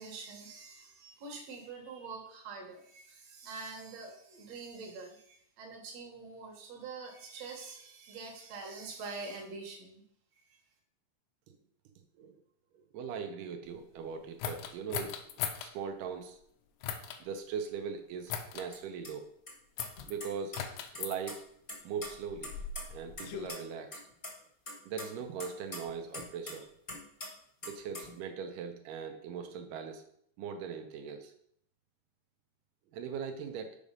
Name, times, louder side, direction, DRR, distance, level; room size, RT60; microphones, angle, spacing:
voice 1, 0.0-10.0 10.4-10.6, right 4 dB, 60° right, 1 dB, 2.4 m, -45 dB
voice 2, 12.9-15.2 15.6-16.4 17.2-19.3 20.0-20.5 21.0-21.4 21.8-22.5 22.9-24.0 24.9-26.7 27.7-30.0 30.4-31.3 32.9-33.8, right 6 dB, 90° right, 5 dB, 2.4 m, -40 dB
sound 1, 14.4-15.7 16.8-17.2 18.3-18.7 19.8-20.1 20.5-21.2 22.1-23.5, left 8 dB, 80° left, 2.1 m, -38 dB
sound 2, 18.7-18.8 19.0-19.1 19.5-19.6 19.8-20.6 20.9-21.3 21.7-23.2 23.5-23.6 23.9-24.3 24.7-26.6 26.9-27.3 27.6-28.1, left 1 dB, 35° left, 0.8 m, -42 dB
6.1 x 5.0 x 5.3 m, 0.67 s
omnidirectional pair, 3.7 m